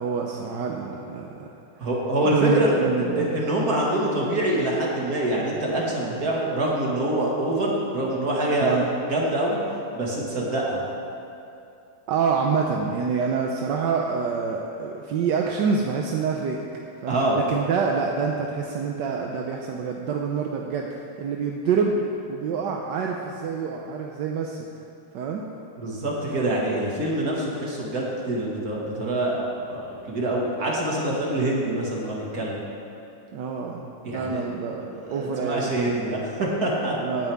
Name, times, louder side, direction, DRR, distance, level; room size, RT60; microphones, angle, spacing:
voice 1, 0.0-1.5 1.8-1.9 2.2-3.3 8.6-8.9 12.1-16.6 17.0-22.0 22.3-24.7 25.1-25.4 33.3-35.8 37.0-37.3, right 5 dB, 65° right, 1 dB, 1.2 m, -26 dB
voice 2, 1.8-2.7 3.2-9.6 9.9-10.8 17.1-17.4 25.8-32.6 34.0-34.4 34.9-36.9, right 1 dB, 45° right, -3 dB, 2.3 m, -25 dB
17.0 x 9.4 x 3.5 m, 2.7 s
omnidirectional pair, 2.4 m